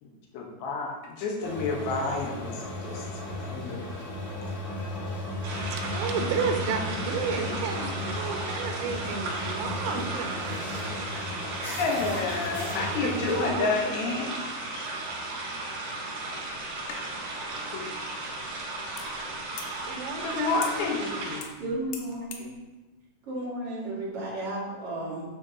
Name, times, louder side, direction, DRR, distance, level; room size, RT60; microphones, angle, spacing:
voice 1, 0.0-3.8 11.8-14.3 17.7-17.9 20.2-21.5, left 4 dB, 70° left, -1 dB, 3.2 m, -30 dB
sound 1, 1.4-13.4, left 1 dB, 40° left, 1.6 m, -35 dB
sound 2, 5.4-21.4, right 2 dB, 55° right, 4.3 m, -35 dB
voice 2, 5.7-10.9 13.0-13.9 19.8-20.8, right 5 dB, 80° right, 3 dB, 3.4 m, -32 dB
sound 3, 16.7-22.5, left 6 dB, 90° left, 3.6 m, -46 dB
voice 3, 21.6-22.6 23.3-25.3, right 1 dB, 35° right, -8 dB, 2.7 m, -33 dB
11.5 x 7.4 x 2.9 m, 1.2 s
omnidirectional pair, 5.7 m